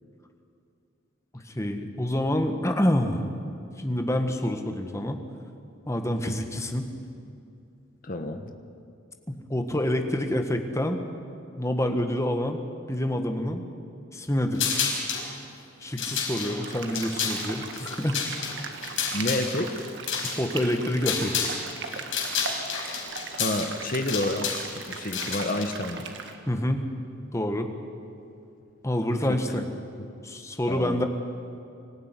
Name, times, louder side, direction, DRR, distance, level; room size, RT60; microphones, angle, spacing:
voice 1, 1.5-3.2 3.8-5.2 5.9-6.9 9.3-11.0 11.6-12.6 12.9-13.6 14.1-14.7 15.8-18.2 20.4-21.3 26.5-26.9 27.3-27.7 28.8-29.7 30.2-31.1, left 1 dB, 15° left, 6 dB, 1.5 m, -27 dB
voice 2, 8.0-8.5 19.1-19.8 23.4-26.1 29.3-29.4 30.7-31.0, left 1 dB, 45° left, 6 dB, 1.2 m, -29 dB
sound 1, 14.5-15.3 15.8-21.6 21.9-25.6, left 6 dB, 75° left, 4.9 m, -30 dB
sound 2, 16.6-26.4, right 4 dB, 60° right, 1.9 m, -39 dB
24.0 x 14.5 x 9.9 m, 2.5 s
head